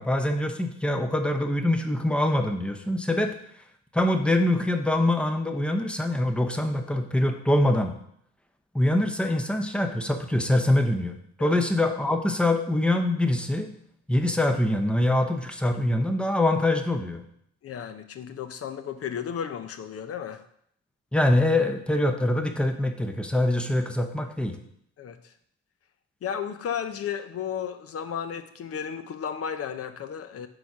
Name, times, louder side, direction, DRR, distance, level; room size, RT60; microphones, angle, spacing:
voice 1, 0.0-3.3 3.9-8.0 8.7-13.7 14.1-17.2 21.1-24.6, left 1 dB, 5° left, 6 dB, 0.7 m, -24 dB
voice 2, 17.6-20.4 25.0-25.3 26.2-30.5, left 8 dB, 50° left, 10 dB, 0.6 m, -34 dB
4.8 x 4.0 x 5.8 m, 0.70 s
cardioid pair, 90°, 30 cm